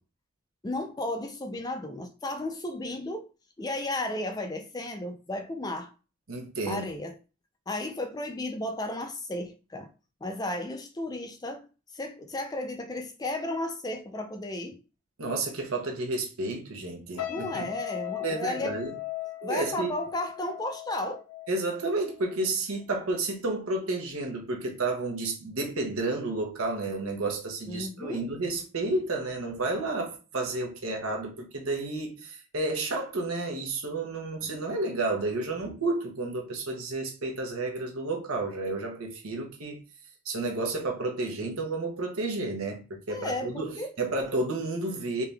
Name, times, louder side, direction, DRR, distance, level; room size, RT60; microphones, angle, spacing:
voice 1, 0.6-3.3 3.6-5.9 6.6-7.2 7.7-9.9 10.2-11.7 11.9-14.8 17.3-18.8 19.4-21.3 27.7-28.3 43.1-43.9, left 1 dB, 20° left, 0.4 m, -34 dB
voice 2, 6.3-6.8 15.2-17.7 18.2-18.9 19.4-19.9 21.5-39.8 40.2-45.2, right 2 dB, 80° right, 1.1 m, -31 dB
sound 1, 17.2-22.5 22.8-23.1, left 16 dB, 85° left, 0.5 m, -39 dB
3.4 x 2.8 x 3.4 m
head